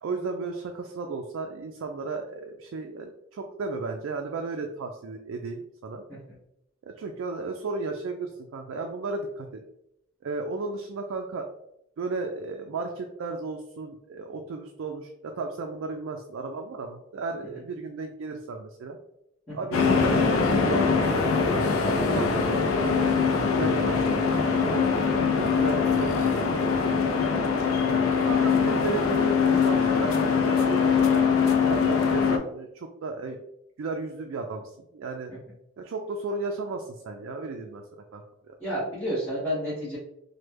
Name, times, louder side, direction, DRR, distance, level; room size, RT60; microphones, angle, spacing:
voice 1, 0.0-6.0 6.8-9.6 10.2-11.4 12.0-19.0 19.5-22.9 23.3-24.9 25.3-27.5 28.1-31.2 31.6-33.4 33.8-35.3 35.8-38.6, right 3 dB, 70° right, 3 dB, 0.3 m, -34 dB
sound 1, 19.7-32.4, left 5 dB, 80° left, 0.4 m, -23 dB
voice 2, 38.6-40.0, equal, 10° left, -13 dB, 1.2 m, -30 dB
3.1 x 2.2 x 3.2 m, 0.80 s
head